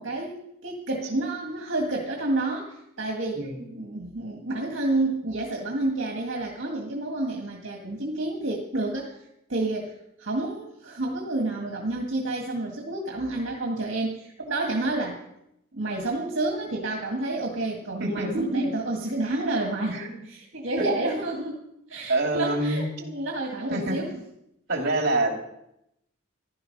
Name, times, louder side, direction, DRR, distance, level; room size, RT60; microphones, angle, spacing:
voice 1, 0.0-3.4 3.7-9.1 9.5-9.9 10.2-15.2 15.7-20.0 20.3-24.2, right 2 dB, 70° right, 0 dB, 1.9 m, -29 dB
voice 2, 3.3-3.7 18.0-18.7 19.9-20.2 20.8-20.9 22.1-22.9 23.7-24.0 24.7-25.3, right 2 dB, 55° right, 2 dB, 3.0 m, -26 dB
15.5 x 12.0 x 5.4 m, 0.81 s
head